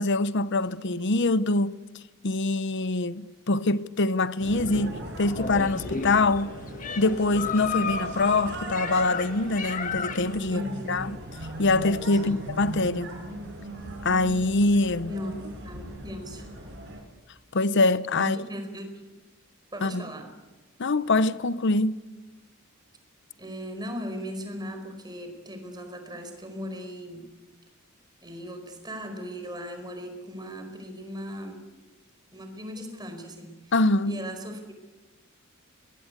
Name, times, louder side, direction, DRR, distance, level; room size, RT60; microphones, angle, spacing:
voice 1, 0.0-1.8 2.2-6.6 7.0-10.6 10.9-11.1 11.6-13.1 14.0-15.1 17.5-18.4 19.8-20.0 20.8-22.0 33.7-34.2, left 2 dB, 55° left, 0.8 m, -24 dB
sound 1, 4.4-17.0, right 1 dB, 55° right, 6.3 m, -38 dB
sound 2, 5.4-10.4, left 5 dB, 40° left, 1.7 m, -33 dB
voice 2, 10.5-11.0 12.2-12.4 15.1-16.5 18.2-18.9 19.7-20.3 23.4-27.3 28.2-31.6 32.3-33.7 34.0-34.7, equal, 20° right, 4.8 m, -37 dB
23.5 x 21.0 x 8.4 m
head